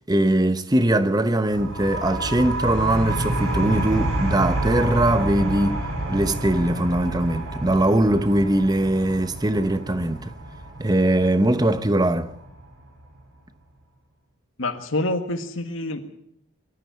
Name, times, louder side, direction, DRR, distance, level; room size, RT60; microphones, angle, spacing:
voice 1, 0.1-5.8 6.1-10.3 10.8-12.3, right 1 dB, 20° right, 0.9 m, -21 dB
sound 1, 1.5-12.9, right 1 dB, 75° right, 4.1 m, -29 dB
voice 2, 14.6-16.0, left 2 dB, 65° left, 1.8 m, -27 dB
22.5 x 12.5 x 9.3 m
head